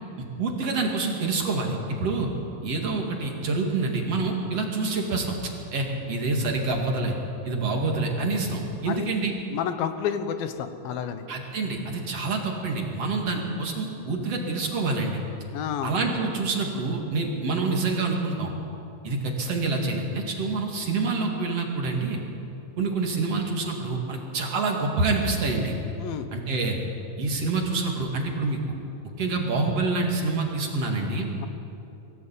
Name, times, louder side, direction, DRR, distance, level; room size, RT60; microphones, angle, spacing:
voice 1, 0.4-2.3 2.6-5.4 5.7-7.2 7.4-9.4 11.3-15.2 15.8-18.5 19.0-22.2 22.8-25.8 26.3-26.8 27.2-28.8 29.2-31.3, right 3 dB, 45° right, 1 dB, 2.9 m, -27 dB
voice 2, 9.5-11.3 15.5-15.9 26.0-26.3 31.4-31.5, left 8 dB, 80° left, 9 dB, 2.9 m, -30 dB
22.0 x 15.5 x 8.4 m, 2.8 s
omnidirectional pair, 4.1 m